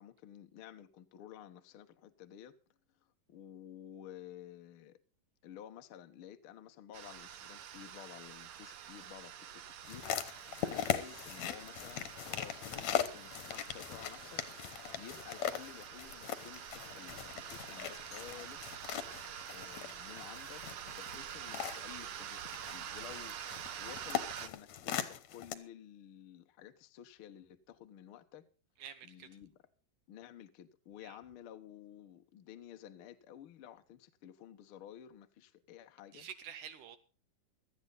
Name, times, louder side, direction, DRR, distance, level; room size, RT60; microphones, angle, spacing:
voice 1, 0.0-2.5 3.3-5.0 5.4-14.4 15.0-18.9 19.5-23.4 23.8-28.5 29.0-29.6 30.1-36.3, left 10 dB, 80° left, 1.2 m, -53 dB
sound 1, 6.9-24.5, right 10 dB, 90° right, 1.3 m, -47 dB
sound 2, 9.8-25.5, left 10 dB, 65° left, 2.0 m, -40 dB
voice 2, 28.8-29.3 31.0-31.2 36.1-37.0, right 8 dB, 75° right, 2.2 m, -48 dB
17.0 x 12.0 x 3.9 m
omnidirectional pair, 4.2 m